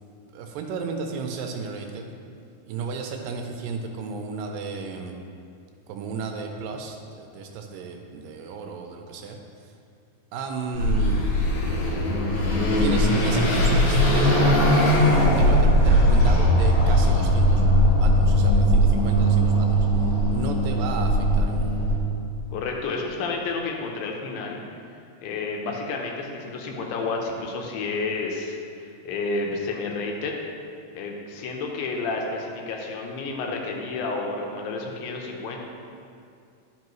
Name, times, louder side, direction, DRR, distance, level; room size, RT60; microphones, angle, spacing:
voice 1, 0.3-2.1 2.7-5.2 5.9-9.4 10.3-11.2 12.4-12.5 12.8-14.5 15.3-19.8 20.3-21.8, right 5 dB, 80° right, 3 dB, 2.2 m, -33 dB
Car passing by / Accelerating revving vroom, 10.7-22.0, equal, 60° left, 1.5 m, -19 dB
voice 2, 22.5-24.6 25.2-28.6 29.0-30.3 31.0-35.6, left 3 dB, 80° left, 1 dB, 2.5 m, -30 dB
10.5 x 5.4 x 3.0 m, 2.4 s
omnidirectional pair, 4.1 m